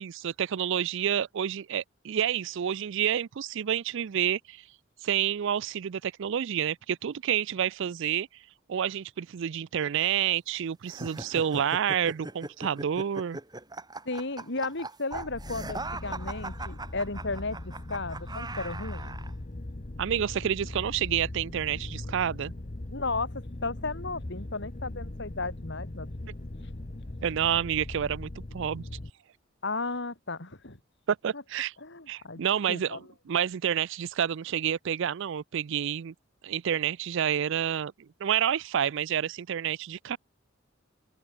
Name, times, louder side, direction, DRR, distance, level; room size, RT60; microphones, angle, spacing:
voice 1, 0.0-4.6 5.0-8.3 8.7-13.4 20.0-22.5 27.2-28.8 31.1-31.7 32.1-33.0 33.3-36.1 36.4-37.9 38.2-40.2, right 9 dB, 65° right, 0.4 m, -29 dB
sound 1, 10.9-19.3, right 2 dB, 20° right, 3.2 m, -40 dB
voice 2, 14.1-19.2 22.9-26.1 29.6-30.8 31.3-31.4 31.8-33.0, left 3 dB, 60° left, 3.5 m, -34 dB
sound 2, 15.1-29.1, left 1 dB, 40° left, 1.0 m, -40 dB
open air
head